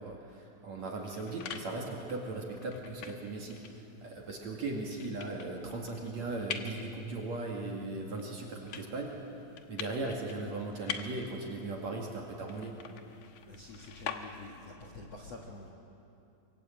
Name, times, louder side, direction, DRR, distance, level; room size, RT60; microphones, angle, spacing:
voice 1, 0.0-9.2 9.7-12.8, right 2 dB, 45° right, 0 dB, 2.9 m, -38 dB
sound 1, 0.8-14.7, left 7 dB, 65° left, 1.9 m, -46 dB
voice 2, 13.5-15.7, left 2 dB, 50° left, 0 dB, 2.1 m, -47 dB
24.5 x 23.5 x 8.9 m, 2.8 s
omnidirectional pair, 5.1 m